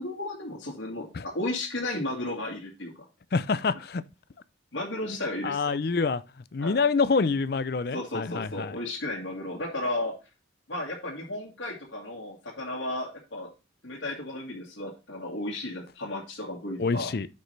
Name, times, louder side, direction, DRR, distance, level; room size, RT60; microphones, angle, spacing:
voice 1, 0.0-1.1 1.3-2.9 3.7-3.8 4.7-5.8 6.6-6.8 7.9-10.1 10.7-13.5 13.8-17.1, left 1 dB, 75° left, 2.0 m, -34 dB
voice 2, 3.3-4.0 5.4-6.2 6.5-8.8 16.8-17.3, left 4 dB, 55° left, 0.4 m, -26 dB
9.9 x 5.4 x 3.3 m
head